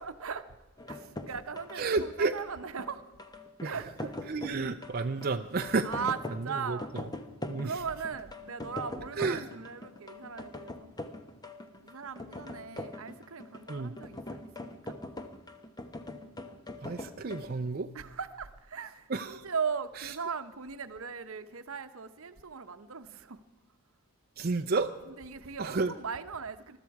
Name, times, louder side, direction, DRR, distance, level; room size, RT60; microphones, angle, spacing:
voice 1, 0.0-0.4 0.9-3.1 3.6-4.2 5.8-6.9 7.6-10.9 11.8-15.0 17.9-23.4 25.1-26.8, right 6 dB, 70° right, 0.9 m, -38 dB
sound 1, 0.8-17.5, left 1 dB, 20° left, 0.9 m, -42 dB
voice 2, 1.8-2.3 3.6-3.8 4.3-6.0 6.5-6.8 7.5-7.7 9.2-9.5 13.7-13.9 16.8-17.9 19.1-19.4 20.0-20.1 24.4-24.9 25.6-25.9, right 3 dB, 45° right, 0.5 m, -31 dB
20.5 x 13.0 x 4.7 m
head